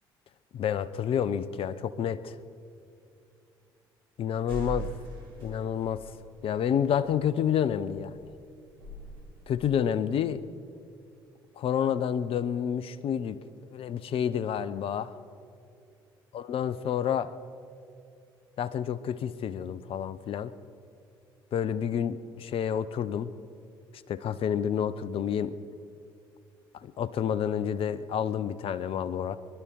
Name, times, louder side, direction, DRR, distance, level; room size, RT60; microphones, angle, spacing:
voice 1, 0.5-2.4 4.2-4.9 5.4-6.0 6.4-8.3 9.5-10.4 11.6-13.4 13.7-15.1 16.3-17.3 18.6-20.5 21.5-23.3 24.1-25.5 26.7-29.4, left 8 dB, 50° left, 15 dB, 0.8 m, -29 dB
sound 1, 4.5-10.0, right 4 dB, 85° right, 3.6 m, -43 dB
24.5 x 12.0 x 4.7 m, 2.5 s
hypercardioid pair, 55°, 12 cm